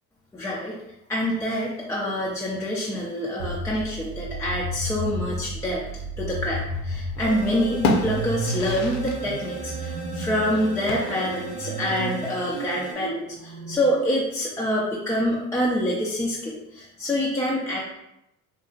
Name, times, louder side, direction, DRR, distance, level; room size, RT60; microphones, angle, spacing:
voice 1, 0.3-0.8 1.1-5.8 6.2-17.8, equal, 5° left, -5 dB, 0.3 m, -26 dB
sound 1, 3.4-13.8, right 1 dB, 80° right, 0.6 m, -33 dB
sound 2, 6.5-7.3 7.6-9.2 9.5-9.6 10.9-11.5, left 2 dB, 70° left, 0.6 m, -28 dB
sound 3, 7.2-12.9, right 5 dB, 15° right, 0.8 m, -37 dB
2.7 x 2.4 x 2.4 m, 0.86 s
hypercardioid pair, 60°, 45 cm